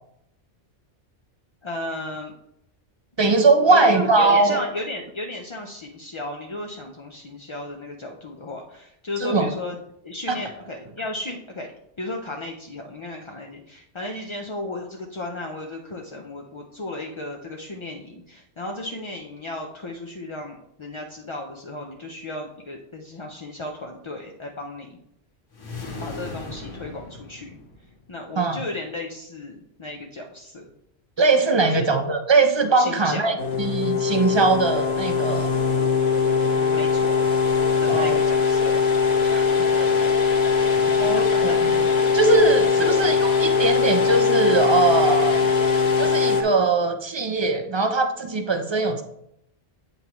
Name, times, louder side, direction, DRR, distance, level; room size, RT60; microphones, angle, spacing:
voice 1, 1.6-2.3 3.7-9.7 10.0-11.7 12.0-24.9 26.0-27.6 28.1-30.7 31.6-31.9 32.7-33.4 36.4-37.2 37.8-38.8 39.7-40.0 40.6-41.9 42.8-43.0, left 2 dB, 40° left, 1 dB, 0.4 m, -34 dB
voice 2, 3.2-4.6 9.2-9.5 10.3-10.4 28.4-28.6 31.2-35.5 37.9-38.2 39.2-39.7 41.0-41.9 42.1-45.4 46.0-49.0, right 3 dB, 35° right, 6 dB, 0.4 m, -21 dB
sound 1, 25.5-28.1, left 3 dB, 90° left, 1.7 m, -37 dB
sound 2, 33.4-46.4, left 5 dB, 60° left, 1.0 m, -21 dB
8.3 x 5.3 x 3.0 m, 0.77 s
omnidirectional pair, 1.2 m